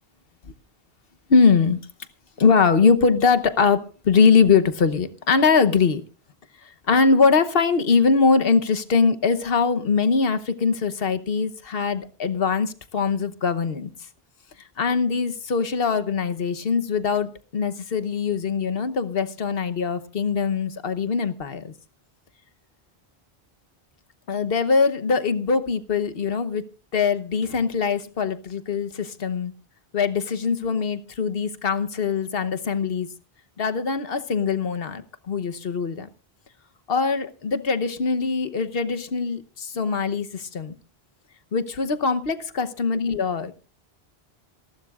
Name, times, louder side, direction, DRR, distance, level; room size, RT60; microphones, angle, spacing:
voice 1, 1.3-1.8 2.4-6.0 6.9-13.9 14.8-21.7 24.3-26.6 26.9-29.5 29.9-33.1 33.6-36.1 36.9-40.7 41.5-43.5, left 5 dB, 70° left, 11 dB, 1.2 m, -22 dB
27.5 x 12.0 x 2.4 m, 0.34 s
omnidirectional pair, 1.0 m